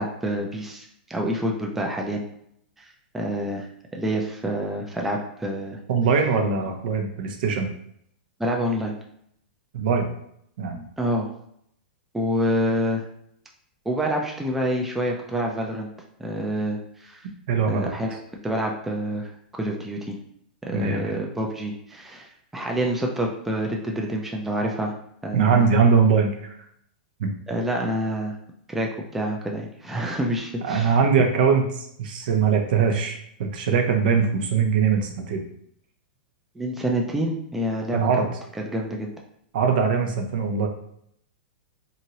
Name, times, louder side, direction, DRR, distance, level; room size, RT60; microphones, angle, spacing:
voice 1, 0.0-2.2 2.8-2.9 3.1-5.8 8.4-8.9 11.0-11.3 12.1-13.0 13.9-15.9 16.2-17.3 17.7-18.2 18.4-20.2 20.6-24.9 25.2-25.7 27.5-28.3 28.7-31.0 36.6-38.1 38.7-39.1, equal, 5° right, 0 dB, 0.4 m, -27 dB
voice 2, 5.9-7.7 9.7-10.1 10.6-10.8 17.5-17.9 20.7-21.1 25.3-26.5 27.2-27.3 30.7-35.4 37.9-38.3 39.5-40.7, right 5 dB, 65° right, 3 dB, 0.6 m, -21 dB
2.9 x 2.6 x 2.8 m, 0.70 s
hypercardioid pair, 135°, 5 cm